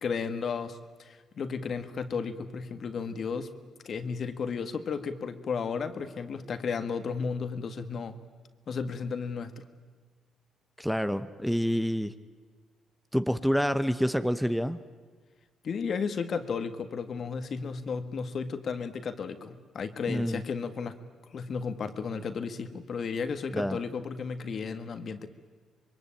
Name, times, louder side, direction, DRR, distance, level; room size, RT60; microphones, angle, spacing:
voice 1, 0.0-3.5 3.9-8.2 8.7-9.6 15.6-21.0 21.3-25.3, left 5 dB, 55° left, 10 dB, 1.7 m, -33 dB
voice 2, 10.8-12.1 13.1-14.8 20.1-20.4 23.5-23.8, equal, ahead, 12 dB, 0.8 m, -27 dB
26.0 x 22.5 x 9.0 m, 1.5 s
cardioid pair, 90°, 0 cm